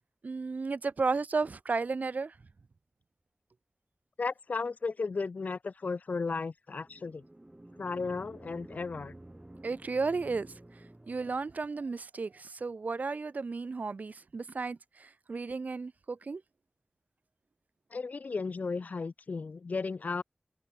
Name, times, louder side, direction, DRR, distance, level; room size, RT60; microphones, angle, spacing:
voice 1, 0.2-2.3 9.6-10.5 11.1-16.4, right 4 dB, 80° right, 0.6 m, -33 dB
voice 2, 4.2-7.2 7.8-9.1 17.9-20.2, left 4 dB, 80° left, 0.4 m, -34 dB
sound 1, 6.7-11.7, right 1 dB, 25° right, 0.9 m, -51 dB
wide cardioid pair, 45°, 3 cm